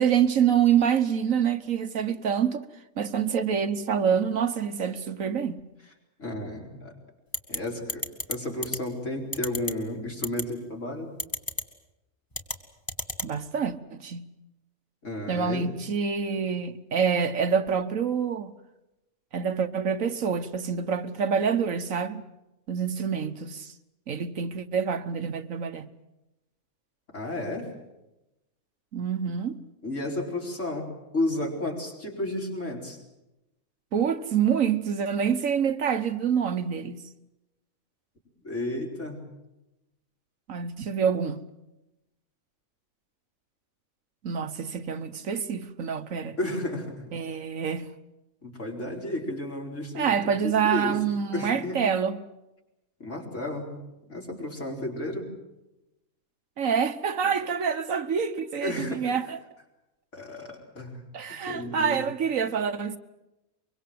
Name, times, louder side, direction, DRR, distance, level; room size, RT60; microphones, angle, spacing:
voice 1, 0.0-2.6 3.0-5.6 13.2-14.3 15.3-18.5 19.3-22.2 22.7-23.7 24.1-25.9 28.9-29.6 33.9-37.0 40.5-41.5 44.2-46.4 47.1-47.9 49.9-52.2 56.6-59.4 61.1-63.0, right 7 dB, 65° right, 1.5 m, -26 dB
voice 2, 6.2-6.9 7.5-11.1 15.0-15.6 27.1-27.7 29.8-33.0 38.4-39.2 46.4-47.1 48.4-50.2 50.4-51.0 51.3-51.8 53.0-53.8 54.1-55.3 58.6-59.1 60.1-61.0 61.3-62.0, left 1 dB, 55° left, 4.9 m, -32 dB
sound 1, 7.3-7.6 7.9-8.3 8.6-8.8 9.3-9.7 10.2-10.4 11.2-11.6 12.3-12.6 12.9-13.3, left 1 dB, 15° left, 1.7 m, -29 dB
24.0 x 24.0 x 7.8 m
omnidirectional pair, 1.5 m